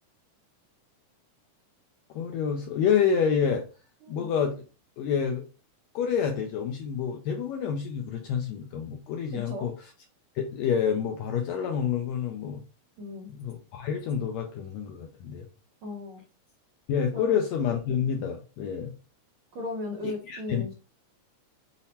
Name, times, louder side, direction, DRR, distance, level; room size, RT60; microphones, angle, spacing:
voice 1, 2.1-3.7 4.1-4.6 5.0-5.4 5.9-9.7 10.3-12.6 13.3-15.5 16.9-18.9 20.0-20.7, left 7 dB, 80° left, 2 dB, 1.6 m, -28 dB
voice 2, 9.3-9.7 13.0-13.3 15.8-16.2 17.1-17.4 19.5-20.7, left 2 dB, 80° right, -1 dB, 1.2 m, -36 dB
5.6 x 2.1 x 4.1 m, 0.35 s
omnidirectional pair, 3.6 m